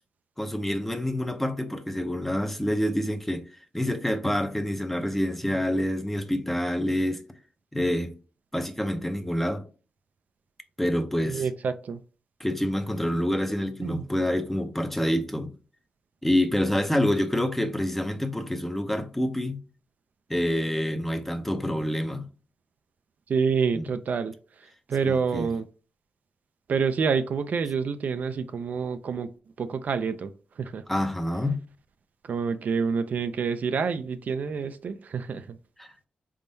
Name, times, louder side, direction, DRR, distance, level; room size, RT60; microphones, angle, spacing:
voice 1, 0.4-3.5 3.7-7.2 7.7-8.1 8.5-9.6 10.8-11.4 12.4-15.5 16.2-19.6 20.3-22.3 23.7-23.9 25.1-25.5 30.9-31.6 35.8-35.9, left 1 dB, 5° left, 0.5 m, -27 dB
voice 2, 11.2-12.0 13.8-14.0 23.3-24.3 24.9-25.7 26.7-29.3 29.6-30.3 30.6-30.8 32.2-35.6, right 5 dB, 60° right, 0.4 m, -27 dB
4.3 x 3.6 x 2.6 m
wide cardioid pair, 105°, 3 cm